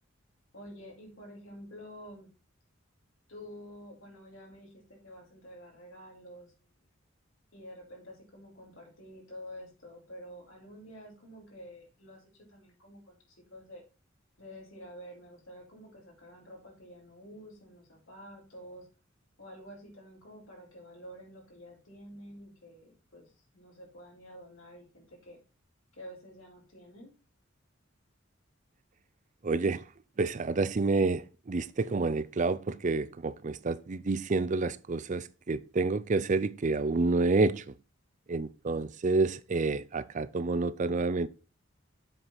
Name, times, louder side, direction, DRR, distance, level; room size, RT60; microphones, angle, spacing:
voice 1, 0.5-2.3 3.3-6.7 7.5-12.2 12.5-13.8 14.4-18.9 19.4-25.4 25.9-27.1, equal, 90° left, 4.6 m, -49 dB
voice 2, 29.4-29.8 30.2-37.7 38.3-41.3, right 3 dB, 40° right, 0.5 m, -29 dB
7.8 x 4.7 x 5.7 m
head